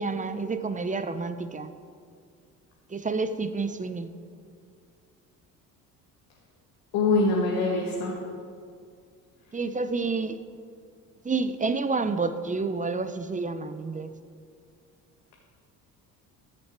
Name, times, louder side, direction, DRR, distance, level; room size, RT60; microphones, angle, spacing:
voice 1, 0.0-1.7 2.9-4.1 9.5-10.4 11.2-14.1, right 4 dB, 20° right, 11 dB, 0.7 m, -29 dB
voice 2, 6.9-8.1, left 3 dB, 70° left, -2 dB, 1.6 m, -24 dB
14.0 x 6.5 x 4.5 m, 2.2 s
hypercardioid pair, 60°, 43 cm